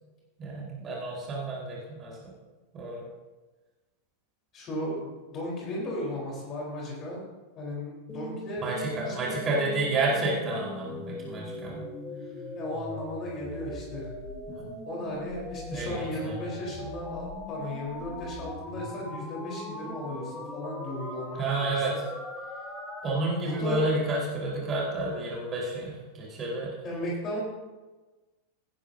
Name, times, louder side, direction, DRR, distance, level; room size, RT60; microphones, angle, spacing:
voice 1, 0.4-2.3 2.7-3.0 8.6-11.8 14.6-14.7 15.7-16.3 21.4-21.9 23.0-26.7, right 2 dB, 25° right, -5 dB, 4.6 m, -30 dB
voice 2, 4.5-7.2 7.6-8.7 9.0-9.3 12.6-14.1 14.9-22.0 23.4-23.8 26.8-27.4, left 1 dB, 30° left, -4 dB, 4.3 m, -35 dB
sound 1, 8.1-23.1, left 1 dB, 10° left, 2.4 m, -40 dB
17.0 x 11.0 x 2.8 m, 1.2 s
figure-of-eight pair, 90°, 0 cm